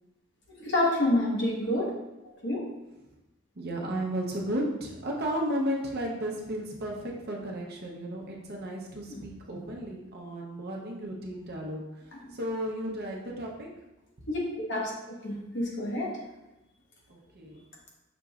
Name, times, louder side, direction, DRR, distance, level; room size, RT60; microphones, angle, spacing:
voice 1, 0.6-1.9 2.4-2.6 9.1-9.2 12.1-12.3 14.3-14.9 15.2-16.1, left 1 dB, 60° left, -3 dB, 1.1 m, -28 dB
voice 2, 3.6-11.8 12.3-13.7 17.1-17.6, equal, 50° right, -1 dB, 0.7 m, -34 dB
5.9 x 3.0 x 2.4 m, 0.99 s
head